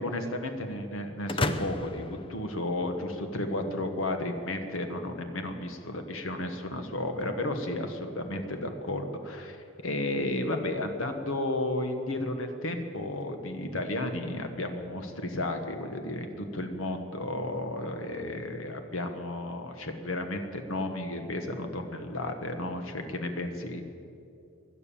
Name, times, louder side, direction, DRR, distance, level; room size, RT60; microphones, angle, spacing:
voice 1, 0.0-23.8, left 1 dB, 85° left, 6 dB, 1.4 m, -33 dB
sound 1, 1.3-3.2, left 2 dB, 25° left, 0.5 m, -33 dB
17.5 x 11.0 x 7.1 m, 2.5 s
head